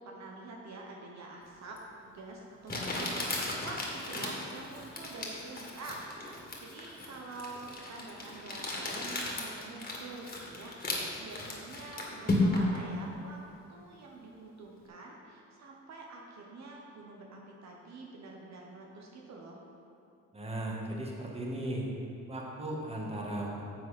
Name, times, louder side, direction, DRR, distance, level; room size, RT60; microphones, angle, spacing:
voice 1, 0.0-1.8 2.0-10.8 11.2-13.4 13.7-19.6, right 3 dB, 65° right, -1 dB, 1.2 m, -46 dB
Crumpling crinkling, 1.8-1.9 2.7-12.8, left 2 dB, 30° left, 2.1 m, -35 dB
voice 2, 20.3-21.9 22.3-23.6, right 1 dB, 20° right, -2 dB, 1.8 m, -36 dB
10.5 x 7.0 x 4.4 m, 2.7 s
cardioid pair, 90°, 30 cm